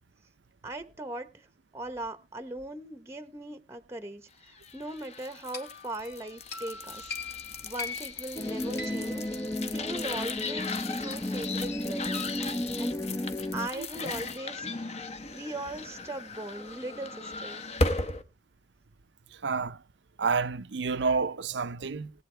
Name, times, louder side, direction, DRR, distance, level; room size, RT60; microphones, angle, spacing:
voice 1, 0.6-1.5 1.7-13.0 13.5-14.8 15.3-17.6, right 1 dB, 15° right, 0.9 m, -40 dB
sound 1, 4.6-18.2, left 3 dB, 35° left, 1.1 m, -37 dB
sound 2, 5.5-10.3, left 4 dB, 60° left, 3.1 m, -42 dB
sound 3, 8.4-13.7, left 1 dB, 15° left, 0.7 m, -33 dB
voice 2, 19.3-19.8 20.2-22.1, right 4 dB, 65° right, 0.6 m, -29 dB
19.5 x 8.8 x 3.3 m
head